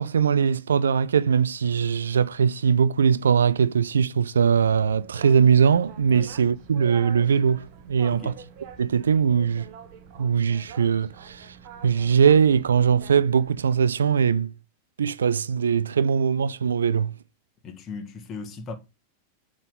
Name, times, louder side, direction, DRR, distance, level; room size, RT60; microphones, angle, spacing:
voice 1, 0.0-8.3 8.8-9.7 10.2-11.5 11.8-14.5 15.0-17.1, right 7 dB, 70° right, 0.4 m, -21 dB
Boat Water vehicle, 4.5-13.7, right 7 dB, 45° right, 1.2 m, -45 dB
voice 2, 8.1-8.4 17.6-18.7, left 4 dB, 25° left, 1.5 m, -37 dB
7.3 x 3.8 x 5.5 m
figure-of-eight pair, 90°, 0 cm